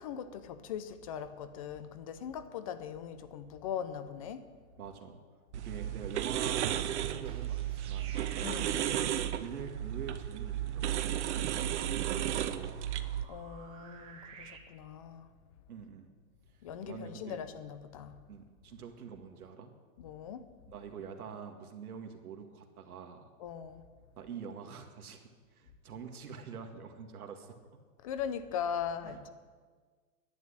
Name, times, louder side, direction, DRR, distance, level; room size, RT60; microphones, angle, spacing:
voice 1, 0.0-4.4 8.4-8.8 13.3-15.3 16.6-18.2 20.0-20.5 23.4-23.8 28.0-29.3, left 8 dB, 25° left, 0.6 m, -40 dB
voice 2, 4.8-5.2 5.5-8.1 8.8-11.7 12.0-13.0 15.7-16.1 16.8-17.4 18.3-19.7 20.7-23.3 24.2-27.5 29.0-29.3, right 6 dB, 85° right, 2.0 m, -46 dB
sound 1, 5.5-13.2, right 11 dB, 50° right, 0.9 m, -34 dB
sound 2, 7.1-14.6, right 6 dB, 15° right, 0.8 m, -55 dB
11.0 x 8.5 x 10.0 m
hypercardioid pair, 160°, 43 cm